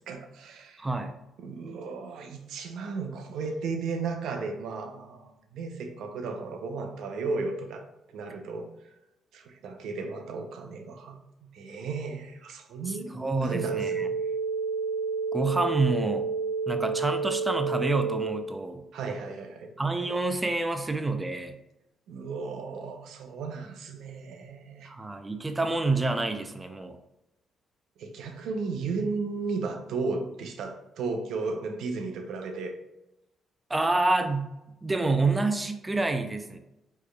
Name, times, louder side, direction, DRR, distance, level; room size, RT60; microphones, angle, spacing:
voice 1, 0.1-0.9 1.4-8.7 9.3-14.1 18.9-19.7 22.1-24.9 28.0-32.8, right 4 dB, 80° right, 5 dB, 0.6 m, -35 dB
voice 2, 0.8-1.1 12.9-14.1 15.3-16.3 16.7-18.8 19.8-21.6 24.9-27.0 33.7-34.5 34.8-36.6, right 3 dB, 15° right, 7 dB, 0.5 m, -28 dB
sound 1, 13.4-18.4, right 5 dB, 55° left, 1.2 m, -30 dB
4.5 x 3.1 x 2.3 m, 0.92 s
cardioid pair, 90°, 0 cm